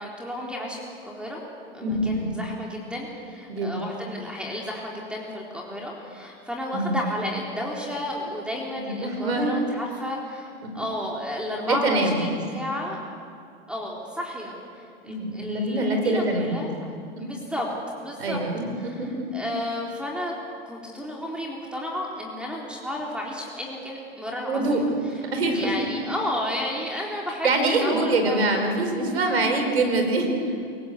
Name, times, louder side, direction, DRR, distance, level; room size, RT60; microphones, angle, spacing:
voice 1, 0.0-1.4 1.7-13.0 13.7-16.9 17.2-17.7 18.0-18.4 18.8-20.3 20.7-25.1 25.5-28.4, left 1 dB, 5° right, -3 dB, 3.9 m, -32 dB
voice 2, 1.8-2.4 3.5-3.8 6.7-7.0 8.8-9.5 10.6-10.7 11.7-12.2 15.1-16.6 17.1-17.2 18.2-19.3 24.4-24.8 25.3-25.9 27.4-30.3, right 2 dB, 85° right, 4 dB, 4.9 m, -24 dB
27.5 x 18.0 x 8.0 m, 2.3 s
hypercardioid pair, 100°, 31 cm